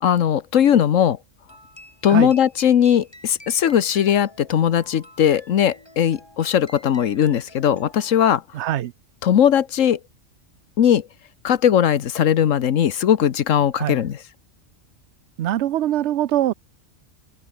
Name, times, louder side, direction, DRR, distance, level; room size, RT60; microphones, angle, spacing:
voice 1, 0.0-1.2 2.0-8.4 9.2-10.0 10.8-11.0 11.4-14.2, left 9 dB, 80° left, 1.3 m, -19 dB
sound 1, 1.5-8.3, left 1 dB, 20° left, 5.4 m, -48 dB
voice 2, 8.5-8.9 13.7-14.0 15.4-16.5, right 12 dB, 65° right, 0.9 m, -23 dB
open air
omnidirectional pair, 1.3 m